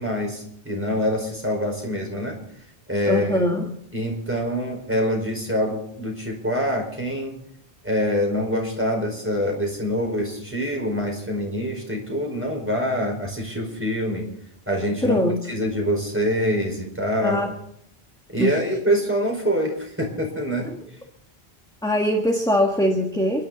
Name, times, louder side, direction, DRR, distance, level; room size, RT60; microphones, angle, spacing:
voice 1, 0.0-2.4 2.9-3.5 3.9-7.3 7.8-14.3 14.7-15.2 15.5-17.4 18.3-20.7, equal, 10° right, 0 dB, 5.0 m, -25 dB
voice 2, 3.0-3.7 15.0-15.4 17.2-17.5 18.4-18.6 21.8-23.4, left 1 dB, 5° left, 2 dB, 1.6 m, -22 dB
30.0 x 11.0 x 4.1 m, 0.70 s
omnidirectional pair, 1.0 m